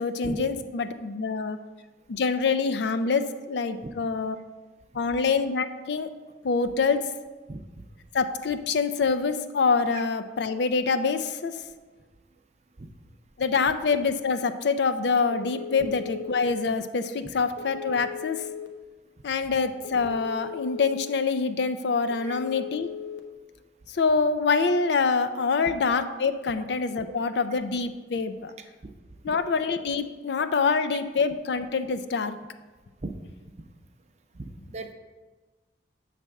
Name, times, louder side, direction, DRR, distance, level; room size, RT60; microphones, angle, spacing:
voice 1, 0.0-1.6 2.1-4.4 4.9-6.1 6.4-7.0 8.1-11.6 13.4-18.4 19.2-22.9 23.9-28.5 29.2-32.4, left 4 dB, 65° left, 10 dB, 0.4 m, -25 dB
Telephone, 15.3-16.4 17.6-18.7 19.8-20.9 22.1-23.2, left 7 dB, 85° left, 0.8 m, -38 dB
voice 2, 34.4-34.9, right 2 dB, 35° right, 6 dB, 0.5 m, -35 dB
7.5 x 3.3 x 6.3 m, 1.3 s
head